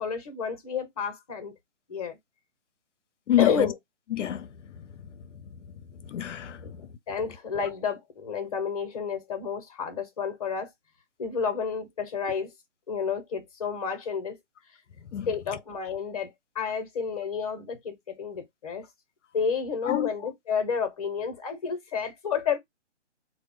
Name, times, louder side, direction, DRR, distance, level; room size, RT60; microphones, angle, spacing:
voice 1, 0.0-1.5 1.9-2.2 3.4-3.7 6.6-6.7 7.1-10.7 11.2-12.5 12.9-14.4 15.3-18.8 19.3-22.6, left 6 dB, 30° left, 0.8 m, -30 dB
voice 2, 3.3-3.7 4.1-4.9 6.1-6.9 15.1-15.3 19.9-20.1, left 12 dB, 80° left, 0.5 m, -28 dB
2.2 x 2.1 x 3.5 m
hypercardioid pair, 155°, 36 cm